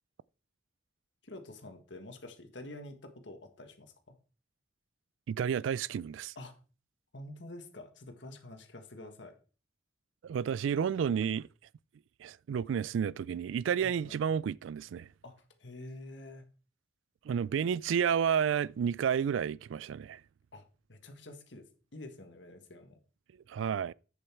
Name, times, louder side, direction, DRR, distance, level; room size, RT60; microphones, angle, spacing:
voice 1, 1.2-4.2 6.3-6.5 7.1-9.3 13.8-14.1 15.2-16.4 20.5-23.0, left 2 dB, 70° left, 1.6 m, -48 dB
voice 2, 5.3-6.3 10.2-11.5 12.2-15.1 17.2-20.2 23.5-23.9, right 7 dB, 90° right, 0.3 m, -31 dB
8.3 x 7.1 x 4.5 m
head